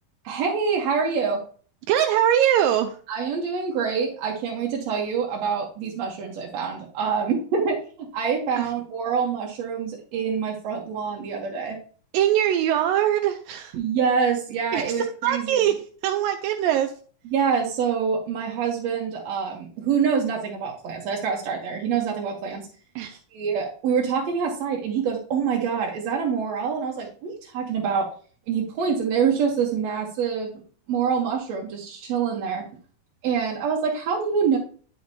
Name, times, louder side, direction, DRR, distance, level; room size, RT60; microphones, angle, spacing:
voice 1, 0.2-1.4 3.1-11.8 13.7-15.5 17.3-22.7 23.3-28.1 28.5-30.5 30.9-32.7 33.2-34.6, right 6 dB, 65° right, -1 dB, 1.9 m, -26 dB
voice 2, 1.9-3.0 8.6-8.7 12.1-13.8 14.7-15.0 15.2-16.9 23.0-23.2, right 11 dB, 80° right, 6 dB, 2.2 m, -22 dB
11.0 x 5.2 x 2.7 m, 0.44 s
omnidirectional pair, 4.0 m